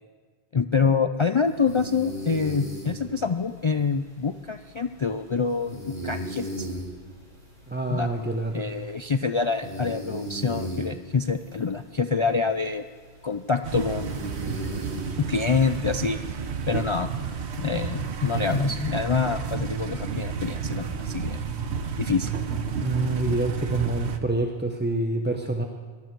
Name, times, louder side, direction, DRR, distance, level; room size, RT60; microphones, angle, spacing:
voice 1, 0.5-5.8 6.0-6.7 7.9-8.1 8.5-12.8 13.2-14.3 15.3-17.1 17.6-21.4 22.0-22.3, left 5 dB, 55° left, 8 dB, 0.3 m, -26 dB
sound 1, 1.4-18.6, right 1 dB, 45° right, 4.1 m, -39 dB
voice 2, 7.7-8.7 22.8-25.6, right 2 dB, 10° right, 3 dB, 0.7 m, -27 dB
sound 2, 13.6-24.2, right 6 dB, 80° right, 1.2 m, -31 dB
21.0 x 13.0 x 4.6 m, 1.5 s
omnidirectional pair, 1.1 m